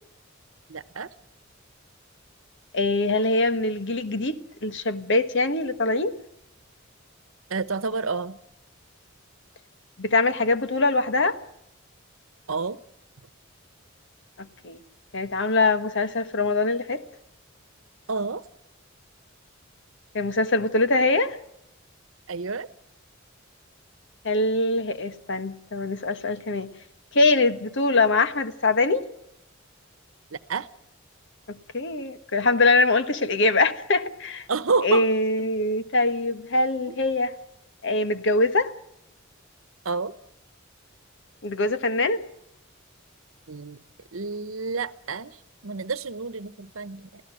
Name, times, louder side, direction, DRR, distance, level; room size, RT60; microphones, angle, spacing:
voice 1, 0.7-1.1 7.5-8.4 12.5-12.8 18.1-18.5 22.3-22.7 30.3-30.7 34.5-35.1 36.9-37.0 39.8-40.1 43.5-43.8 44.1-45.4 45.6-47.2, right 4 dB, 75° right, 1.0 m, -29 dB
voice 2, 2.7-6.2 10.0-11.4 14.4-14.8 15.1-17.0 20.1-21.4 24.2-26.7 27.1-29.1 31.5-34.5 34.8-37.3 37.8-38.7 41.4-42.2, left 2 dB, 65° left, 1.4 m, -23 dB
25.0 x 16.0 x 7.7 m
head